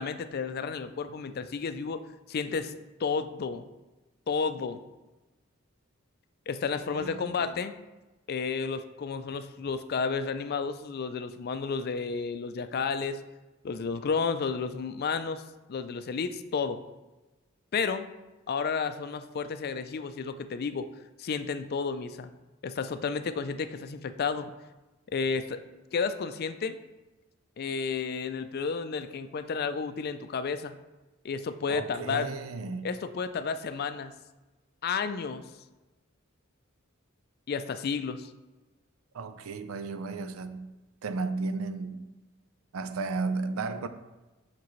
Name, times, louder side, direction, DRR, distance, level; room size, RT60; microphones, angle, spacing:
voice 1, 0.0-2.0 2.3-2.7 3.0-3.7 4.3-4.8 6.5-7.7 8.3-13.2 13.6-15.4 15.7-16.8 17.7-18.1 18.5-20.9 21.2-22.3 22.6-24.5 25.1-25.6 25.9-26.8 27.6-30.8 31.2-32.3 32.8-34.1 34.8-35.5 37.5-38.3, left 5 dB, 50° left, 0.4 m, -31 dB
voice 2, 6.9-7.6 31.7-32.9 39.1-40.7 41.0-42.0 42.7-43.9, right 4 dB, 90° right, 0.5 m, -34 dB
7.1 x 6.0 x 3.1 m
head